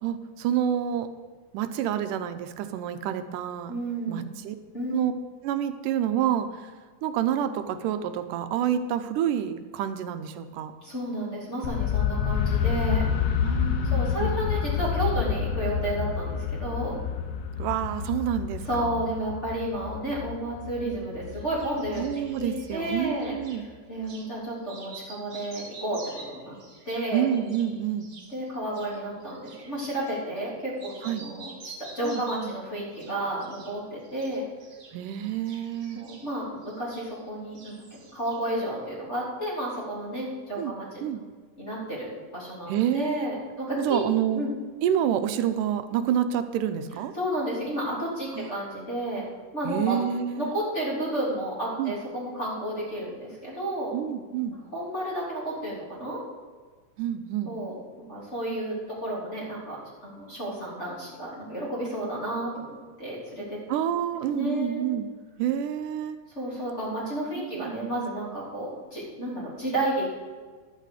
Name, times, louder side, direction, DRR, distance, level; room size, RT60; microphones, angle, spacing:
voice 1, 0.0-1.1 1.5-3.7 4.1-4.6 4.9-5.1 5.4-6.7 7.0-10.7 13.4-14.3 17.6-19.0 22.0-23.6 27.1-28.1 31.0-31.3 32.0-32.6 34.9-36.0 40.6-40.7 41.0-41.2 42.7-43.3 43.8-44.5 44.8-47.1 48.3-48.5 49.6-50.5 51.8-52.0 53.9-54.6 57.0-57.5 63.7-65.1 65.4-66.2 67.4-67.9, right 10 dB, 90° right, 9 dB, 2.2 m, -28 dB
voice 2, 3.7-4.3 4.7-5.0 10.8-13.4 13.8-17.0 18.7-22.0 22.3-23.4 23.9-26.0 26.3-26.6 26.9-27.3 28.3-34.4 35.9-41.0 41.6-44.1 44.3-44.5 47.2-49.2 49.5-50.0 50.4-53.9 54.7-56.2 57.4-57.8 58.1-63.6 64.3-64.8 66.4-70.1, right 1 dB, 20° left, -6 dB, 3.5 m, -32 dB
sound 1, 11.6-23.5, left 8 dB, 80° left, 2.4 m, -29 dB
sound 2, 21.3-23.6 24.0-24.3 24.6-30.5 30.8-32.6 32.9-33.8 34.0-37.3 37.5-38.6, right 3 dB, 40° right, 1.5 m, -48 dB
11.5 x 9.1 x 4.9 m, 1.5 s
omnidirectional pair, 3.7 m